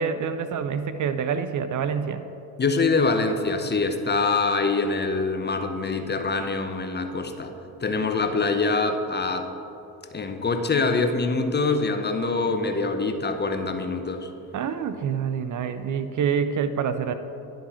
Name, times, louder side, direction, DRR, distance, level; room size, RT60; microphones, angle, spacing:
voice 1, 0.0-2.2 14.5-17.1, right 7 dB, 45° right, 10 dB, 0.5 m, -26 dB
voice 2, 2.6-7.5 7.8-9.5 10.1-14.3, left 3 dB, 25° left, 6 dB, 0.6 m, -24 dB
11.5 x 3.8 x 4.3 m, 2.8 s
supercardioid pair, 60°, 43 cm